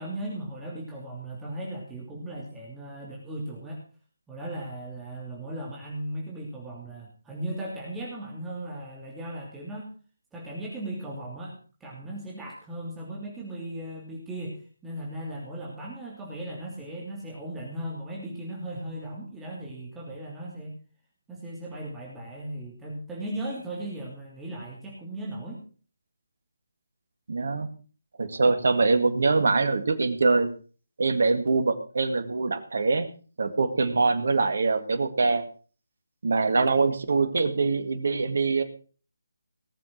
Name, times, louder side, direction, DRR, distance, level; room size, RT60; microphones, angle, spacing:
voice 1, 0.0-3.8 4.3-9.9 10.3-20.8 21.3-25.6, right 1 dB, 10° right, -4 dB, 3.0 m, -37 dB
voice 2, 27.3-27.7 28.2-30.5 31.0-33.1 33.4-35.4 36.2-38.6, right 3 dB, 60° right, 9 dB, 2.1 m, -23 dB
18.5 x 7.5 x 6.0 m, 0.40 s
figure-of-eight pair, 155°, 0 cm